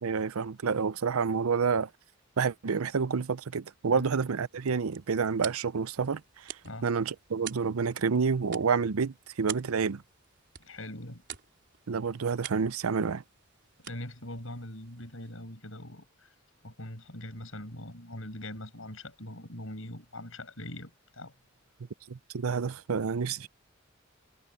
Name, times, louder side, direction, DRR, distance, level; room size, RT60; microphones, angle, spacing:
voice 1, 0.0-1.9 2.4-6.2 6.8-10.0 11.9-13.2 22.1-23.5, right 5 dB, 90° right, 0.6 m, -29 dB
sound 1, 4.4-15.6, right 10 dB, 55° right, 4.3 m, -48 dB
voice 2, 10.6-11.2 13.8-16.3 16.6-21.3, left 1 dB, 70° left, 6.8 m, -42 dB
head